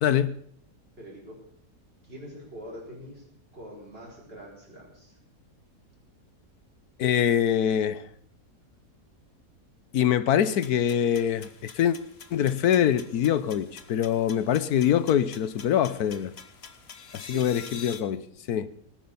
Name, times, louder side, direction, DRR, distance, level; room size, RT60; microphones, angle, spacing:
voice 1, 0.0-0.3 7.0-8.1 9.9-12.0 12.3-16.3 17.1-18.2 18.5-18.7, left 9 dB, 75° left, 16 dB, 1.3 m, -24 dB
voice 2, 1.0-1.4 2.0-3.2 3.5-5.2 17.1-17.5, equal, 35° right, -4 dB, 5.7 m, -44 dB
sound 1, 10.4-18.0, left 6 dB, 45° left, 1.3 m, -47 dB
18.0 x 10.0 x 7.1 m, 0.65 s
omnidirectional pair, 1.7 m